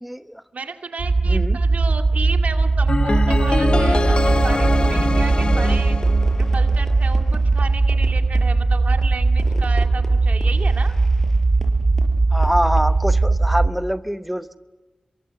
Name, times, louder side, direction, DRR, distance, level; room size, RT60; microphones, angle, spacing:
voice 1, 0.0-0.4 1.2-1.6 12.3-14.6, equal, 5° right, 11 dB, 0.9 m, -24 dB
voice 2, 0.5-6.0 6.4-10.9, right 4 dB, 85° right, 6 dB, 2.2 m, -33 dB
sound 1, 1.0-13.7, right 3 dB, 60° right, 1.0 m, -19 dB
sound 2, 2.9-7.0, left 2 dB, 40° left, 0.9 m, -23 dB
Fireworks, 3.7-13.2, left 1 dB, 20° left, 4.8 m, -39 dB
26.5 x 23.0 x 7.0 m, 1.2 s
wide cardioid pair, 65°, 2 cm